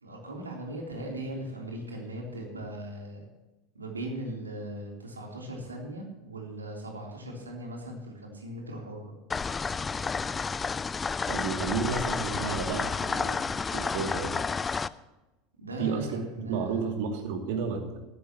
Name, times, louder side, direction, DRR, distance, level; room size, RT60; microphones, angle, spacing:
voice 1, 0.0-3.3 3.8-9.1 15.6-16.8, right 1 dB, 85° right, 0 dB, 3.4 m, -39 dB
sound 1, 9.3-14.9, left 5 dB, 20° left, 0.5 m, -31 dB
voice 2, 11.3-14.4 15.8-16.1 16.4-18.0, right 5 dB, 60° right, 3 dB, 2.6 m, -32 dB
17.5 x 14.5 x 3.0 m, 1.1 s
figure-of-eight pair, 75°, 0 cm